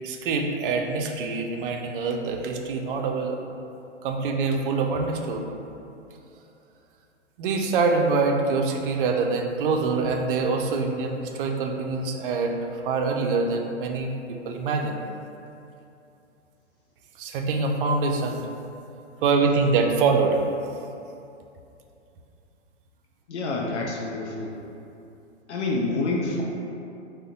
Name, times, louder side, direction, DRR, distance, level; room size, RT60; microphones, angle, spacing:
voice 1, 0.0-3.4 4.0-5.5 7.4-15.0 17.2-18.4 19.2-20.4, right 4 dB, 50° right, 3 dB, 0.4 m, -25 dB
voice 2, 23.3-24.6 25.5-26.4, left 3 dB, 75° left, -2 dB, 0.5 m, -27 dB
2.6 x 2.1 x 3.9 m, 2.6 s
hypercardioid pair, 120°, 35 cm